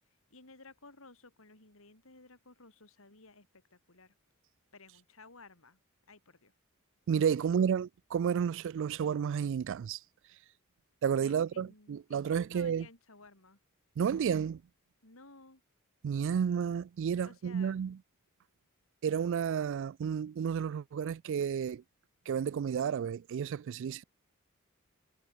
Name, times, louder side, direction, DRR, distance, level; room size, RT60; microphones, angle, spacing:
voice 1, 0.3-4.1 4.7-5.8 6.1-6.5 7.2-7.7 11.1-12.2 12.5-13.6 15.0-15.6 17.2-17.8, left 3 dB, 65° left, 4.2 m, -56 dB
voice 2, 7.1-10.0 11.0-12.9 14.0-14.6 16.0-18.0 19.0-21.8 22.3-24.0, right 7 dB, 60° right, 0.3 m, -31 dB
head